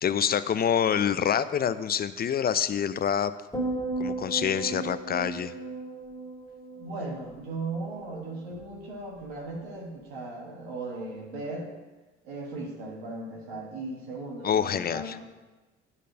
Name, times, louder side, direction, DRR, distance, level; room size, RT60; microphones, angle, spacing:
voice 1, 0.0-3.3 4.0-5.5 14.4-15.2, left 8 dB, 30° left, 14 dB, 0.5 m, -26 dB
sound 1, 3.5-7.9 8.2-8.6, right 2 dB, 10° left, 2.0 m, -35 dB
voice 2, 6.7-11.7 12.2-15.2, right 2 dB, 90° right, -2 dB, 1.6 m, -37 dB
8.2 x 4.2 x 6.4 m, 1.2 s
hypercardioid pair, 60°, 30 cm